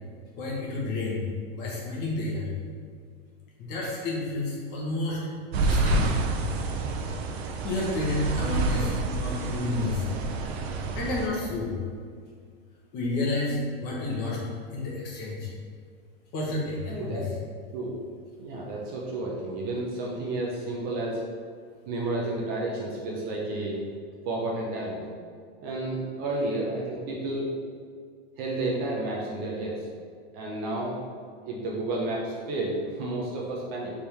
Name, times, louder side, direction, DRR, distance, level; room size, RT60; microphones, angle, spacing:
voice 1, 0.4-1.2 1.5-2.5 3.6-5.3 5.6-6.3 7.6-10.1 10.9-11.8 12.9-14.4 14.7-15.5 16.3-17.3, left 2 dB, 35° left, -4 dB, 1.0 m, -30 dB
sound 1, 5.5-11.3, right 2 dB, 85° right, 0.7 m, -28 dB
voice 2, 16.9-17.2 17.7-17.9 18.4-21.2 21.9-23.8 24.2-25.0 25.6-27.5 28.4-29.9 30.3-31.0 31.4-33.9, right 2 dB, 30° right, -3 dB, 0.5 m, -31 dB
3.6 x 3.3 x 4.3 m, 2.1 s
supercardioid pair, 160°, 31 cm